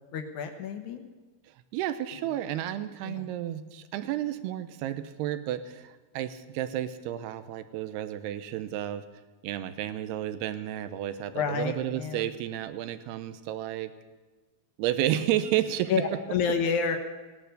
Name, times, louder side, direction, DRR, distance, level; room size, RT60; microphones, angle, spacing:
voice 1, 0.1-1.0 3.0-3.3 11.3-12.3 15.9-17.0, left 6 dB, 70° left, 5 dB, 1.8 m, -29 dB
voice 2, 1.7-9.0 9.4-13.9 14.8-15.9, right 12 dB, 80° right, 11 dB, 2.8 m, -31 dB
18.5 x 11.5 x 6.7 m, 1.3 s
omnidirectional pair, 4.8 m